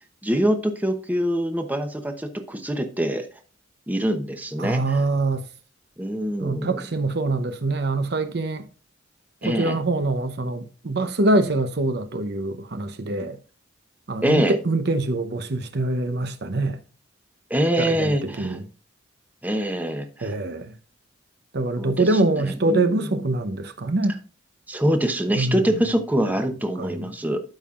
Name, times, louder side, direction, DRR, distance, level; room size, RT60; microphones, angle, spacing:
voice 1, 0.2-3.3 3.9-5.0 6.0-6.8 9.4-9.8 14.2-14.6 17.5-18.6 19.4-20.3 21.8-23.2 24.7-27.4, right 1 dB, 10° right, 0.8 m, -24 dB
voice 2, 4.6-5.4 6.4-8.7 9.4-13.4 14.1-16.8 17.8-18.6 20.2-20.7 21.5-24.2 25.3-25.7 26.8-27.1, right 2 dB, 60° right, 0.8 m, -24 dB
13.0 x 5.5 x 2.5 m
head